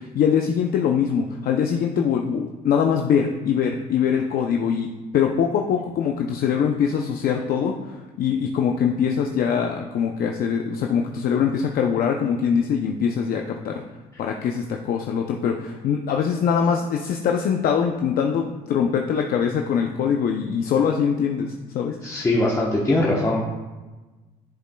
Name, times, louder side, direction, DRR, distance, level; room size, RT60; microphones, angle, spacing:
voice 1, 0.0-13.8 14.2-22.0, left 7 dB, 60° left, 3 dB, 0.6 m, -23 dB
voice 2, 22.0-23.4, left 2 dB, 20° left, -4 dB, 1.0 m, -21 dB
11.5 x 7.0 x 2.3 m, 1.2 s
cardioid pair, 110°, 17 cm